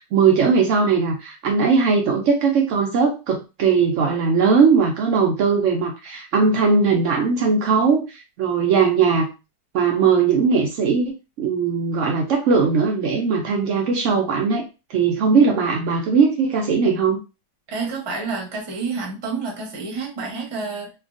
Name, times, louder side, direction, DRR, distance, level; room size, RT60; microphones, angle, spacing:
voice 1, 0.0-8.0 8.4-9.3 9.7-14.6 14.9-17.2, right 5 dB, 85° right, 1 dB, 0.6 m, -19 dB
voice 2, 17.7-20.9, right 4 dB, 25° right, -1 dB, 0.5 m, -29 dB
3.4 x 2.2 x 2.4 m, 0.28 s
omnidirectional pair, 1.9 m